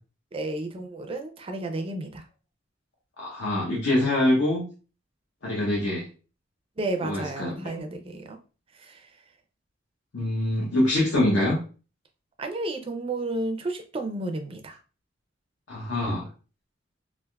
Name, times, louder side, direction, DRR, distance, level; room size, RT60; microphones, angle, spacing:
voice 1, 0.3-2.2 6.8-8.4 8.7-9.1 12.4-14.8, right 2 dB, 30° right, 5 dB, 0.4 m, -32 dB
voice 2, 3.2-4.7 5.4-6.1 7.0-7.7 10.1-11.6 15.7-16.3, left 1 dB, 70° left, -5 dB, 0.8 m, -24 dB
3.4 x 2.5 x 2.2 m, 0.35 s
head